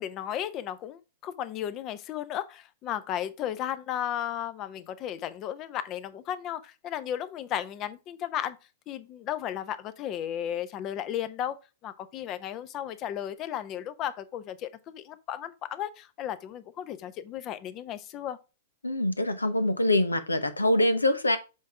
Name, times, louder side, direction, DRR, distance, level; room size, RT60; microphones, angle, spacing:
voice 1, 0.0-8.6 8.9-11.6 11.8-18.4, left 10 dB, 35° left, 0.8 m, -34 dB
voice 2, 18.8-21.4, left 1 dB, 85° left, 1.0 m, -24 dB
7.5 x 3.7 x 4.6 m
figure-of-eight pair, 100°, 0 cm